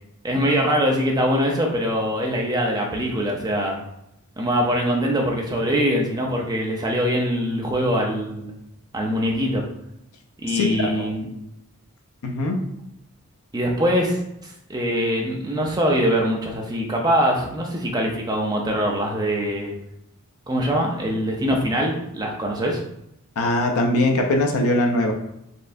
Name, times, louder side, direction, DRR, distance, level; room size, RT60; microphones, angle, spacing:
voice 1, 0.2-3.8 4.4-8.5 8.9-9.6 10.4-11.3 13.5-19.7 20.5-22.8, equal, 20° right, -1 dB, 0.5 m, -23 dB
voice 2, 10.5-11.1 12.2-12.6 23.4-25.1, left 1 dB, 80° left, 2 dB, 0.5 m, -21 dB
4.3 x 3.2 x 2.6 m, 0.81 s
head